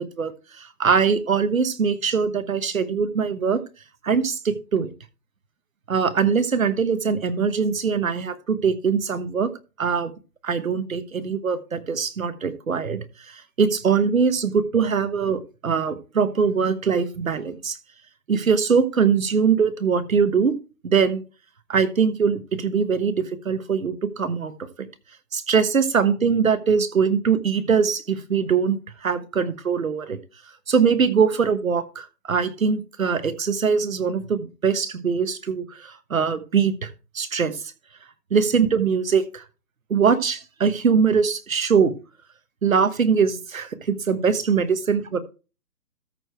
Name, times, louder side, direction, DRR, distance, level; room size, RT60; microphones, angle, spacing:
voice 1, 0.0-3.6 4.0-4.9 5.9-9.5 9.8-10.1 10.4-17.8 18.3-20.5 20.8-21.2 21.7-24.5 25.3-30.2 30.7-37.7 38.3-39.4 39.9-41.9 42.6-45.2, right 6 dB, 55° right, 12 dB, 1.2 m, -22 dB
13.5 x 4.8 x 4.6 m, 0.32 s
hypercardioid pair, 175°, 49 cm